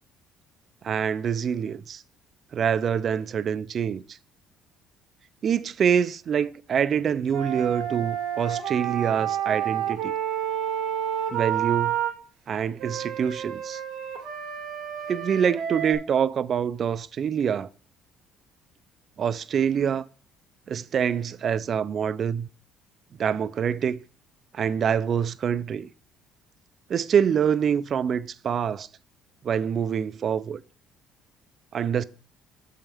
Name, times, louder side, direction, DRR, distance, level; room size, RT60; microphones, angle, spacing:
voice 1, 0.8-2.0 2.5-4.0 5.4-10.1 11.3-12.0 12.5-13.8 15.1-17.7 19.2-20.0 20.7-22.5 23.2-24.0 24.5-25.9 26.9-28.9 29.4-30.6 31.7-32.0, right 7 dB, 45° right, 0.4 m, -25 dB
Wind instrument woodwind instrument, 7.3-12.1 12.8-15.9, right 10 dB, 75° right, 2.0 m, -29 dB
7.0 x 5.6 x 3.4 m
cardioid pair, 125°, 0 cm